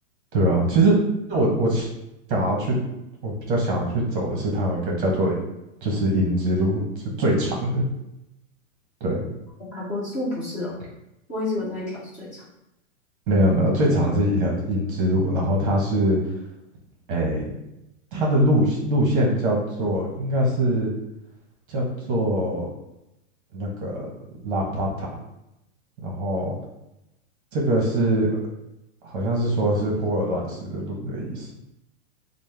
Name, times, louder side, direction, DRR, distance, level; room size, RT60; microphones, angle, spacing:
voice 1, 0.3-1.0 1.3-1.9 2.3-2.8 3.2-5.3 5.8-6.8 7.2-7.8 9.0-9.3 13.3-16.2 17.1-17.5 18.1-20.9 21.7-22.7 23.5-23.9 24.4-25.1 26.0-26.5 27.5-28.3 29.0-31.5, right 1 dB, 40° right, -2 dB, 0.8 m, -22 dB
voice 2, 9.7-10.7 11.3-12.4, left 2 dB, 20° left, -8 dB, 1.1 m, -29 dB
5.2 x 2.1 x 3.2 m, 0.88 s
supercardioid pair, 165°, 40 cm